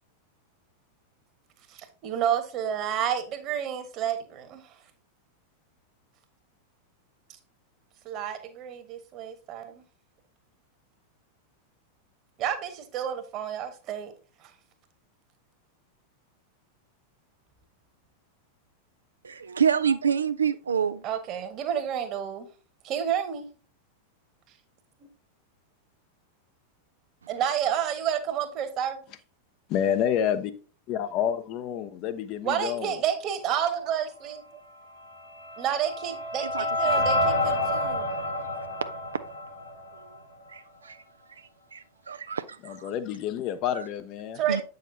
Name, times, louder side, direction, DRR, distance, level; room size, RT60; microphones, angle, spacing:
voice 1, 1.7-4.6 8.0-9.8 12.4-14.1 21.0-22.5 22.8-23.5 25.0-25.1 27.3-29.0 32.4-34.4 35.6-38.1 44.3-44.6, right 9 dB, 35° right, 1.3 m, -30 dB
voice 2, 19.2-21.0 36.5-37.0 40.5-41.0 41.7-41.8 42.1-42.8 44.5-44.6, right 7 dB, 70° right, 0.3 m, -27 dB
voice 3, 29.7-30.5 30.9-32.9 42.6-44.4, left 9 dB, 40° left, 0.6 m, -28 dB
sound 1, 35.0-40.2, left 1 dB, 85° left, 3.7 m, -28 dB
8.1 x 6.4 x 2.7 m
figure-of-eight pair, 90°, 0 cm